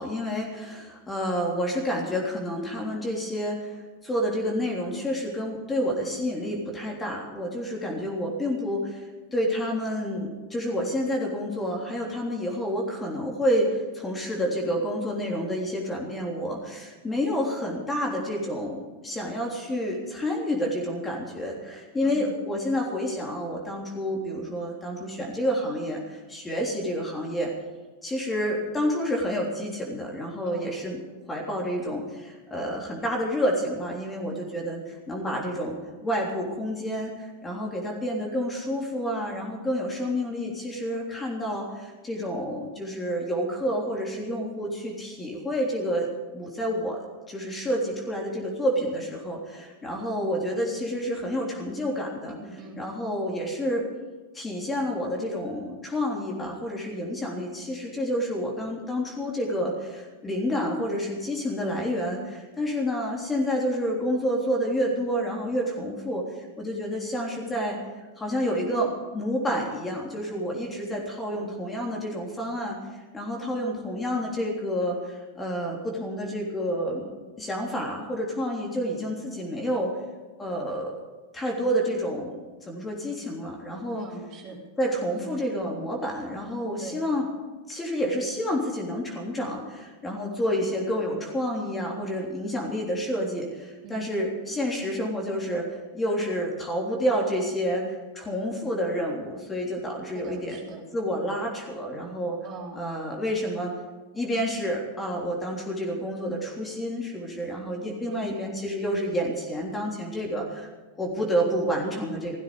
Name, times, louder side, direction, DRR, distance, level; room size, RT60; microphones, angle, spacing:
voice 1, 0.0-3.8 4.0-27.5 28.0-31.0 31.3-46.1 46.3-47.0 47.3-52.4 52.7-53.9 54.3-67.8 68.2-72.8 73.1-80.0 80.4-80.9 81.3-84.1 84.8-87.3 87.7-95.6 95.9-100.6 100.9-102.4 102.7-103.7 104.1-110.7 111.0-112.4, equal, 15° left, -1 dB, 3.4 m, -29 dB
voice 2, 52.3-52.8 71.3-71.6 84.0-84.6 85.1-85.3 86.8-87.0 93.8-94.0 100.1-100.8 102.4-102.8 108.0-108.5, right 3 dB, 35° right, -2 dB, 4.0 m, -42 dB
17.0 x 15.0 x 5.1 m, 1.3 s
figure-of-eight pair, 90°, 0 cm